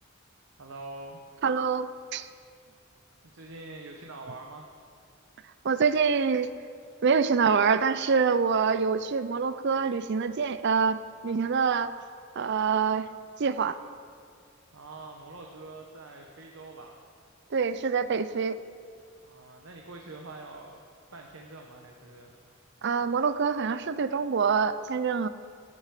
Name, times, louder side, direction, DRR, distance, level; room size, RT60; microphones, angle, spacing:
voice 1, 0.6-1.2 3.2-4.7 14.7-17.0 19.2-20.8 21.1-22.3, right 2 dB, 80° right, 1 dB, 1.1 m, -44 dB
voice 2, 1.4-2.3 5.6-6.5 7.0-11.9 12.4-13.1 13.4-13.8 17.5-18.6 22.8-25.3, right 5 dB, 60° right, 13 dB, 0.5 m, -25 dB
14.0 x 9.9 x 5.0 m, 2.2 s
head